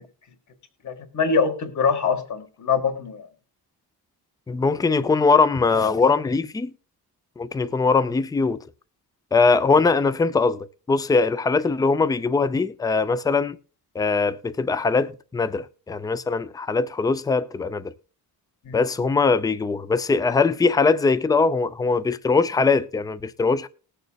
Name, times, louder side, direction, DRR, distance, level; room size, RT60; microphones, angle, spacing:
voice 1, 0.8-3.3 18.7-18.8, left 5 dB, 45° left, 1.8 m, -24 dB
voice 2, 4.5-6.7 7.4-8.6 9.3-13.6 13.9-17.9 18.7-23.7, left 4 dB, 10° left, 0.4 m, -21 dB
20.0 x 6.7 x 2.3 m
cardioid pair, 150°, 41 cm